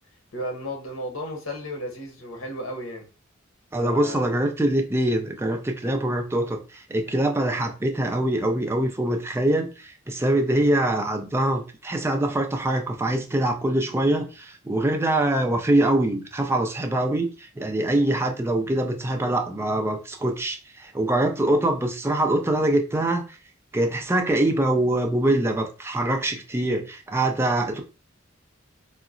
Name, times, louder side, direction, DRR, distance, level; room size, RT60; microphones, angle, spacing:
voice 1, 0.3-3.1 3.8-4.2, left 1 dB, 80° left, 3 dB, 0.9 m, -33 dB
voice 2, 3.7-23.4 23.7-27.8, right 1 dB, 10° right, 3 dB, 0.4 m, -24 dB
3.7 x 2.1 x 2.4 m, 0.33 s
head